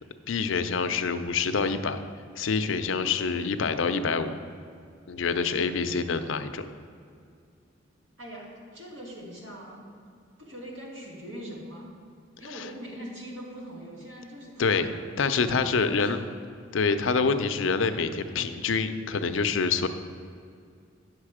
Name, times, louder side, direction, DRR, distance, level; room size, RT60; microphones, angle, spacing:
voice 1, 0.3-2.0 2.4-4.4 5.1-6.6 14.6-14.9 15.2-16.2 16.7-19.9, left 5 dB, 75° left, 9 dB, 0.5 m, -26 dB
voice 2, 8.2-10.0 10.4-11.9 12.4-16.3, equal, 70° right, -3 dB, 2.2 m, -42 dB
9.6 x 6.5 x 4.9 m, 2.3 s
head